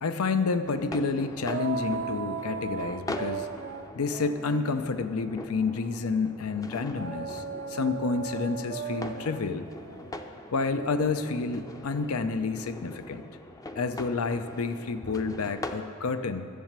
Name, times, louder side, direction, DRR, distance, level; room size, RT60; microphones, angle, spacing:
voice 1, 0.0-3.5 4.0-7.4 7.7-9.7 10.5-13.2 13.8-16.5, left 4 dB, 90° left, 10 dB, 0.6 m, -29 dB
sound 1, 0.6-15.9, left 1 dB, 15° left, 0.5 m, -42 dB
sound 2, 1.4-6.1 6.9-11.6, right 6 dB, 45° right, 0.4 m, -38 dB
10.5 x 7.4 x 7.3 m, 2.9 s
head